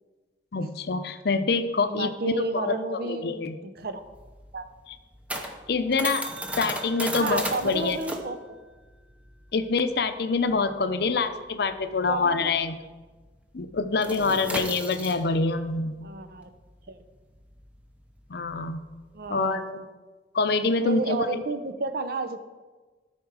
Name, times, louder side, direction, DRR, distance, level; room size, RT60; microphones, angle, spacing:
voice 1, 0.5-3.6 5.7-6.3 6.6-8.0 9.5-12.8 13.5-16.0 18.3-18.8 19.3-19.9 20.3-21.3, left 4 dB, 60° left, 9 dB, 0.6 m, -26 dB
voice 2, 1.9-4.0 4.5-4.7 7.2-8.4 12.1-12.5 16.0-16.5 16.9-17.0 19.1-19.7 20.8-22.4, right 3 dB, 55° right, 8 dB, 0.7 m, -31 dB
sound 1, 3.8-12.7 13.0-13.3 13.5-19.3, right 1 dB, 10° right, 0.7 m, -36 dB
13.0 x 4.4 x 4.7 m, 1.3 s
head